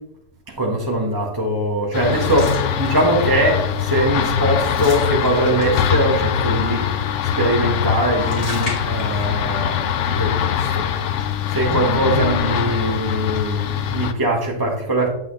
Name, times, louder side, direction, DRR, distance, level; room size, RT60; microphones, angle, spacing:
voice 1, 0.5-7.0 7.4-9.8 10.1-10.8 11.5-15.1, right 1 dB, 15° right, -2 dB, 0.9 m, -21 dB
sound 1, 1.9-14.1, left 9 dB, 80° left, 0.6 m, -22 dB
sound 2, 2.1-3.4 3.8-4.0 4.3-6.1 7.8-9.6 9.9-10.0 10.9-11.7, left 1 dB, 35° left, 2.3 m, -35 dB
9.1 x 6.3 x 3.2 m, 0.84 s
omnidirectional pair, 1.9 m